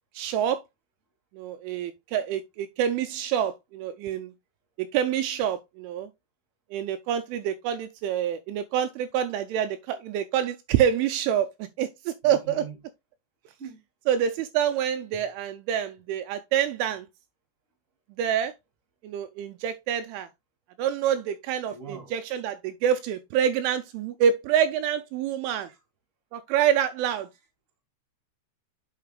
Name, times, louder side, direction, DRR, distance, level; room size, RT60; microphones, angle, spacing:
voice 1, 0.1-0.6 1.3-4.3 4.8-6.1 6.7-12.6 14.1-17.1 18.2-18.5 19.0-20.3 20.8-25.7 26.3-27.3, right 9 dB, 85° right, 2.9 m, -27 dB
voice 2, 12.2-12.8 13.4-13.8 15.1-15.2 21.7-22.1 25.6-25.8, right 6 dB, 25° right, 1.7 m, -42 dB
9.2 x 5.8 x 2.3 m
omnidirectional pair, 5.7 m